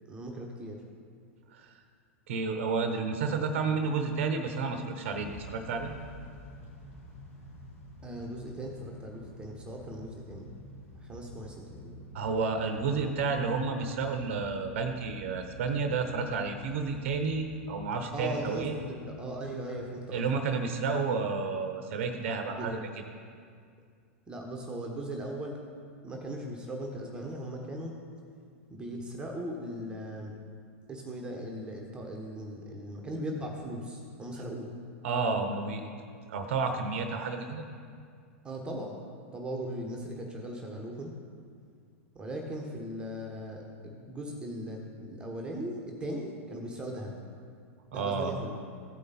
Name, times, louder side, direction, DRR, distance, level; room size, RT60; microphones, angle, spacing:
voice 1, 0.1-0.8 8.0-10.5 10.9-12.0 18.1-20.4 22.5-22.7 24.3-25.6 26.0-27.9 28.7-30.3 30.9-34.7 38.4-38.9 39.3-41.1 42.1-47.1 47.9-48.6, right 1 dB, 15° right, 0 dB, 1.3 m, -38 dB
voice 2, 2.3-5.9 12.1-18.7 20.1-22.8 35.0-35.8 36.3-37.6 47.9-48.4, right 4 dB, 65° right, 6 dB, 0.9 m, -31 dB
Motor vehicle (road) / Engine starting / Accelerating revving vroom, 5.1-20.1, equal, 85° left, 2.4 m, -49 dB
14.5 x 5.3 x 4.2 m, 2.2 s
hypercardioid pair, 105°, 7 cm